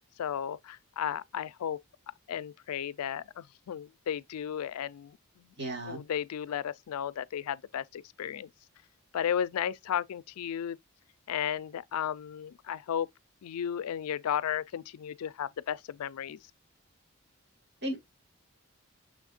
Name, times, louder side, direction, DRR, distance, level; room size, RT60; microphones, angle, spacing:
voice 1, 0.2-1.8 2.3-5.5 5.9-8.5 9.1-10.8 11.3-13.1 13.4-16.4, left 9 dB, 80° left, 0.3 m, -34 dB
voice 2, 5.6-6.0 17.8-18.0, right 1 dB, 50° right, 1.7 m, -34 dB
6.2 x 3.5 x 2.4 m
head